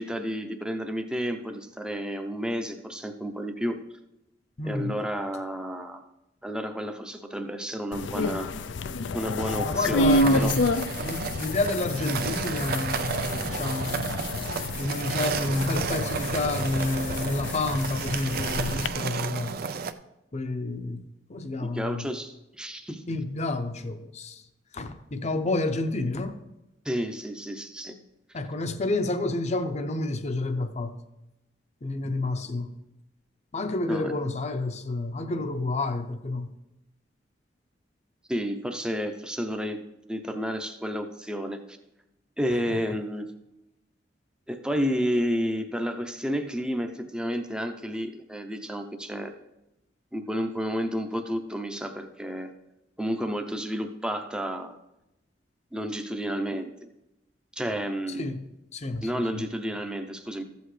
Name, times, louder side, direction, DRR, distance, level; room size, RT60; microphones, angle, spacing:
voice 1, 0.0-3.8 4.6-6.0 6.4-8.5 9.1-10.5 21.6-23.0 26.8-28.0 33.9-34.1 38.3-39.8 40.1-41.8 42.4-43.3 44.5-49.3 50.1-52.5 53.0-54.8 55.7-56.7 57.6-58.3 59.0-60.4, equal, 5° right, 0.7 m, -31 dB
voice 2, 4.6-5.0 9.6-10.7 11.0-14.3 14.8-19.6 20.3-22.1 23.1-24.4 24.7-26.4 28.3-31.0 31.8-32.7 33.5-36.5 42.7-42.8 58.1-59.5, left 2 dB, 40° left, 0.7 m, -30 dB
sound 1, 7.9-18.9, left 2 dB, 75° left, 0.5 m, -29 dB
sound 2, 10.1-19.9, right 6 dB, 55° right, 0.4 m, -32 dB
14.0 x 8.0 x 3.3 m
head